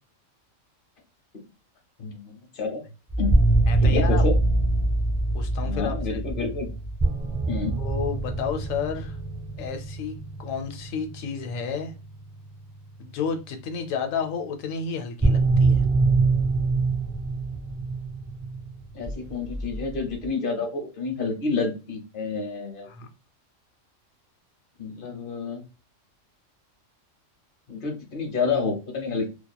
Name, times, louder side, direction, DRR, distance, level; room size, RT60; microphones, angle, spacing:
voice 1, 2.0-2.8 3.2-3.4 3.8-4.4 5.6-6.7 7.5-7.7 18.9-22.9 24.8-25.6 27.7-29.3, left 4 dB, 50° left, 0.9 m, -29 dB
sound 1, 3.1-13.2 15.2-20.3, right 2 dB, 15° right, 0.4 m, -24 dB
voice 2, 3.7-4.2 5.3-6.2 7.8-9.2 9.6-11.9 13.0-15.8 22.9-23.1, left 6 dB, 90° left, 1.0 m, -31 dB
2.8 x 2.4 x 2.2 m
omnidirectional pair, 1.3 m